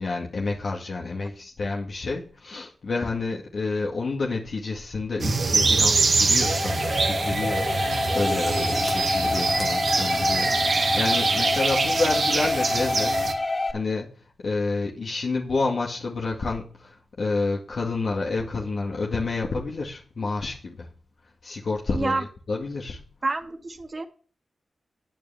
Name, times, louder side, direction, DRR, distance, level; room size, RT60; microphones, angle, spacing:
voice 1, 0.0-7.8 8.1-14.2 14.4-20.9 21.4-23.0, left 3 dB, 70° left, 2.2 m, -29 dB
sound 1, 5.2-13.3, right 3 dB, 65° right, 2.0 m, -24 dB
sound 2, 6.4-13.7, left 2 dB, 40° left, 2.4 m, -27 dB
voice 2, 21.9-22.3 23.2-24.0, right 3 dB, 45° right, 2.2 m, -28 dB
16.5 x 9.1 x 3.6 m
supercardioid pair, 40°, 0 cm